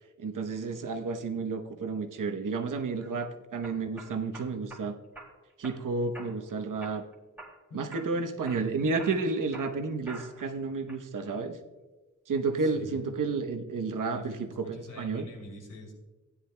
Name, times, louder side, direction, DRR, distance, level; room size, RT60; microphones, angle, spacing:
voice 1, 0.2-4.9 5.6-7.0 7.7-11.6 12.3-15.3, right 4 dB, 85° right, 5 dB, 0.9 m, -31 dB
sound 1, 2.7-3.1 3.6-4.8 5.1-5.8 6.1-6.5 6.8-7.6 7.9-8.1 8.5-10.5 10.9-11.4, right 2 dB, 5° right, 2.3 m, -47 dB
voice 2, 7.7-8.3 8.7-8.9 12.6-13.1 14.1-15.9, left 1 dB, 85° left, -1 dB, 3.0 m, -46 dB
16.0 x 9.9 x 2.2 m, 1.2 s
wide cardioid pair, 140°, 31 cm